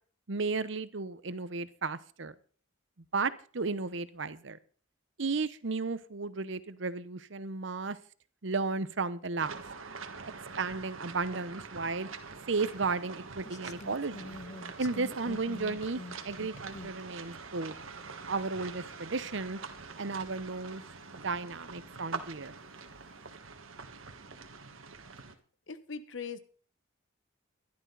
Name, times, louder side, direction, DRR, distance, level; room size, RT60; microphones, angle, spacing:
voice 1, 0.3-2.3 3.1-4.6 5.2-8.0 8.4-9.6 10.6-12.1 12.5-14.3 14.8-17.7 18.3-19.6 20.0-20.8 21.2-22.5, right 4 dB, 60° right, 14 dB, 0.9 m, -34 dB
sound 1, 9.4-25.3, right 4 dB, 80° right, 1.6 m, -45 dB
sound 2, 12.6-12.7 13.4-17.0 17.8-17.9 18.6-18.7 19.3-19.4 20.1-20.2 20.8-20.9 21.6-22.3 22.8-23.2, left 2 dB, 35° left, 0.7 m, -46 dB
voice 2, 25.7-26.4, left 5 dB, 65° left, 12 dB, 1.1 m, -40 dB
15.0 x 12.0 x 4.0 m, 0.43 s
head